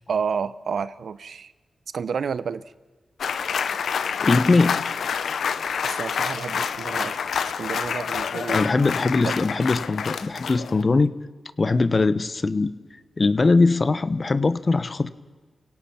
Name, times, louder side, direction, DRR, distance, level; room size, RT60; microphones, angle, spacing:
voice 1, 0.1-1.5 1.9-2.6 5.8-7.2 7.6-8.7 9.2-9.3, right 6 dB, 75° right, 16 dB, 0.7 m, -30 dB
sound 1, 3.2-10.8, left 6 dB, 85° left, 0.8 m, -27 dB
voice 2, 4.2-4.8 8.5-11.1 11.6-12.7 13.2-15.1, left 3 dB, 45° left, 14 dB, 1.1 m, -21 dB
29.5 x 17.0 x 5.9 m, 1.4 s
cardioid pair, 50°, 0 cm